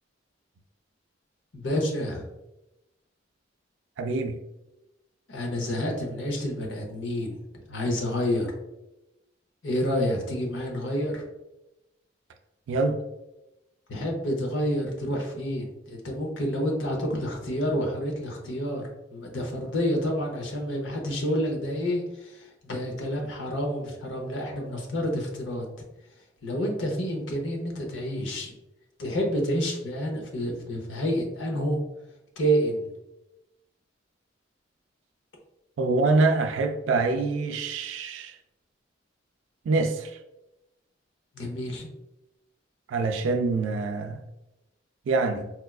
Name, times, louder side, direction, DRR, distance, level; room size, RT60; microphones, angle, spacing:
voice 1, 1.5-2.3 5.3-7.4 7.7-8.5 9.6-11.2 13.9-25.7 26.4-28.5 29.0-31.8 32.4-32.9 41.3-41.9, equal, 75° left, 0.7 m, -29 dB
voice 2, 4.0-4.4 12.7-13.0 35.8-38.4 39.7-40.2 42.9-44.2 45.1-45.5, right 3 dB, 80° right, 0.3 m, -25 dB
4.3 x 2.3 x 2.3 m
head